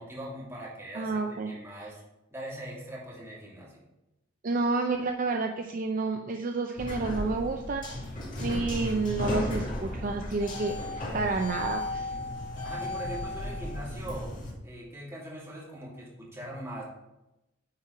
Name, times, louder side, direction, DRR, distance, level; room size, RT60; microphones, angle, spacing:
voice 1, 0.0-2.0 2.3-3.8 12.6-14.3 14.6-16.8, right 1 dB, 15° right, -6 dB, 2.8 m, -41 dB
voice 2, 0.9-1.5 4.4-7.9 8.4-12.1, right 3 dB, 45° right, 3 dB, 0.5 m, -30 dB
sound 1, 6.8-14.5, left 1 dB, 40° left, 2.1 m, -35 dB
9.5 x 4.5 x 4.7 m, 0.95 s
head